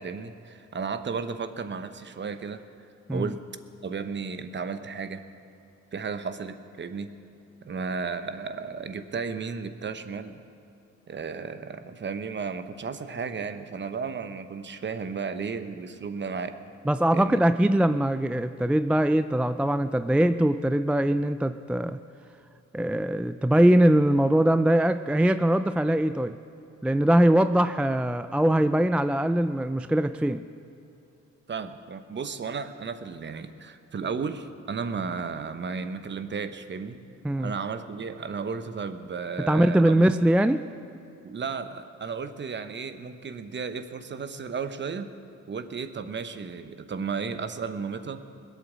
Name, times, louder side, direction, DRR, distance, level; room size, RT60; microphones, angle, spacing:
voice 1, 0.0-2.6 3.1-3.4 3.8-5.2 5.9-7.1 7.6-10.4 11.1-16.6 17.1-17.4 31.5-37.0 37.4-40.0 41.2-45.1 45.5-48.2, right 5 dB, 40° right, 10 dB, 1.0 m, -34 dB
voice 2, 16.9-22.0 22.7-26.4 26.8-30.4 37.2-37.5 39.5-40.6, right 1 dB, 5° right, 11 dB, 0.3 m, -22 dB
20.5 x 8.3 x 7.4 m, 2.7 s
cardioid pair, 90°, 30 cm